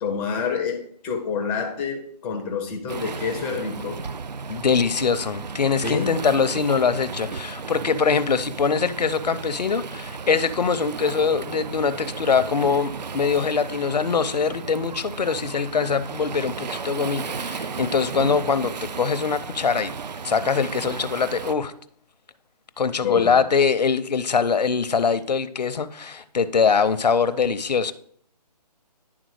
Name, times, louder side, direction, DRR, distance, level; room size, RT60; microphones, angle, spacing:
voice 1, 0.0-4.0 5.8-6.1 23.0-23.4, left 6 dB, 5° left, 0.4 m, -27 dB
Waves surf, 2.9-21.5, right 5 dB, 90° right, 0.5 m, -34 dB
voice 2, 4.5-19.9 20.2-21.7 22.8-27.9, left 5 dB, 80° left, 0.6 m, -23 dB
10.5 x 3.7 x 4.7 m
figure-of-eight pair, 150°, 21 cm